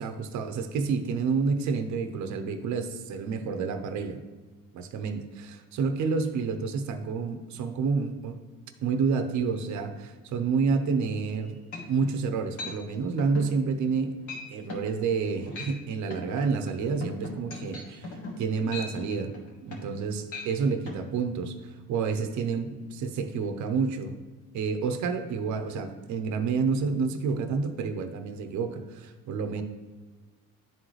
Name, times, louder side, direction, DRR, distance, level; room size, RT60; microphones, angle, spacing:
voice 1, 0.0-4.2 4.7-8.4 8.8-11.6 11.9-14.2 14.5-19.3 19.6-24.2 24.5-29.6, right 5 dB, 55° right, 7 dB, 0.7 m, -29 dB
sound 1, 11.3-11.4 11.7-12.1 12.6-12.8 13.2-13.5 13.9-14.0 14.3-14.4 14.7-14.9 15.4-15.8 16.1-20.0 20.3-20.5 20.9-21.0, left 2 dB, 60° left, 1.7 m, -39 dB
10.5 x 3.8 x 3.2 m, 1.3 s
cardioid pair, 100°, 35 cm